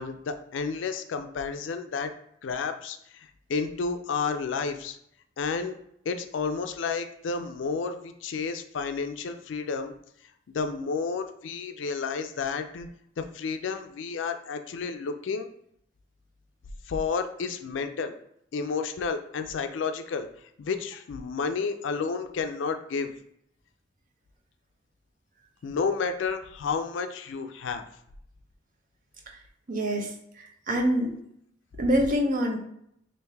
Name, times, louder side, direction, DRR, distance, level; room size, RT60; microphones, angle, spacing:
voice 1, 0.0-2.1 2.4-5.0 5.4-5.7 6.1-9.9 10.5-12.9 13.2-15.5 16.9-18.2 18.5-20.3 20.6-23.1 25.6-27.8, left 5 dB, 70° left, 7 dB, 0.4 m, -31 dB
voice 2, 29.7-31.1 31.8-32.6, equal, 45° right, 2 dB, 0.6 m, -26 dB
3.3 x 2.6 x 3.4 m, 0.72 s
head